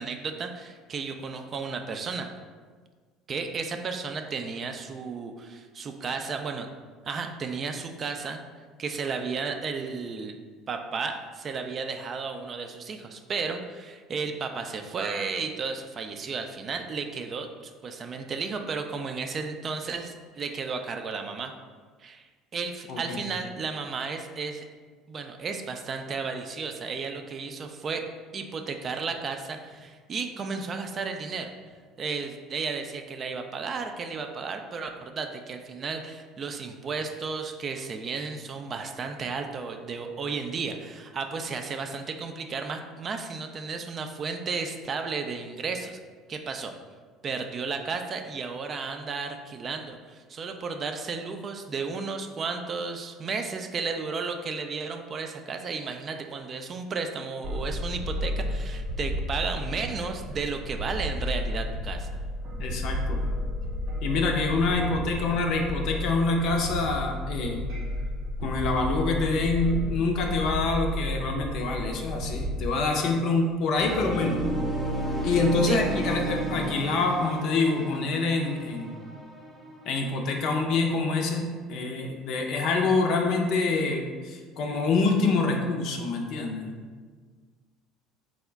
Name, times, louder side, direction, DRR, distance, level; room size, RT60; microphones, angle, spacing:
voice 1, 0.0-2.3 3.3-6.7 7.0-8.4 8.8-10.4 10.7-21.5 22.0-22.3 22.5-24.6 25.1-28.1 28.3-31.5 32.0-46.0 46.3-46.7 47.2-62.1 75.6-75.8, right 4 dB, 40° right, 5 dB, 0.3 m, -33 dB
voice 2, 22.9-23.3 62.6-63.2 64.0-67.6 68.4-74.4 75.2-79.0 79.8-86.7, left 3 dB, 60° left, 2 dB, 0.5 m, -26 dB
sound 1, 57.4-72.7, left 1 dB, 65° right, 0.7 m, -32 dB
sound 2, 73.8-80.6, right 1 dB, 15° right, 0.7 m, -33 dB
3.7 x 2.1 x 3.4 m, 1.5 s
hypercardioid pair, 65°, 0 cm